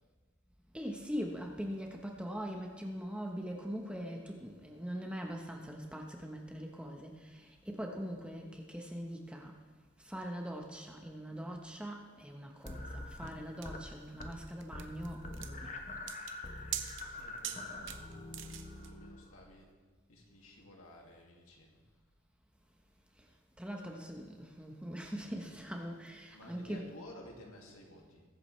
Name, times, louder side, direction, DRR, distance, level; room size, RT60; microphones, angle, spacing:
voice 1, 0.7-9.6 10.0-15.8 23.6-26.8, equal, 5° right, 1 dB, 1.1 m, -42 dB
sound 1, 12.7-13.9 14.1-14.5 14.7-19.5, left 2 dB, 35° left, 1.0 m, -45 dB
sound 2, 12.7-18.9, right 10 dB, 60° right, 0.8 m, -44 dB
voice 2, 17.1-19.7 20.1-21.8 26.3-28.2, left 1 dB, 90° left, 0 dB, 2.3 m, -54 dB
21.0 x 8.5 x 3.3 m, 1.5 s
head